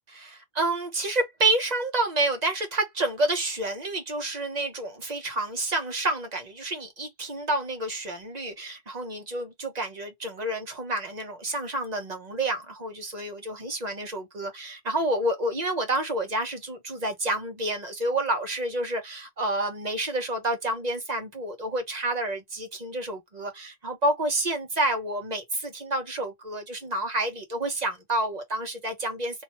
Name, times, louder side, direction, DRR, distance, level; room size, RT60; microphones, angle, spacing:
voice 1, 0.1-29.4, right 2 dB, 40° right, 1.2 m, -29 dB
3.0 x 2.9 x 3.1 m
omnidirectional pair, 1.1 m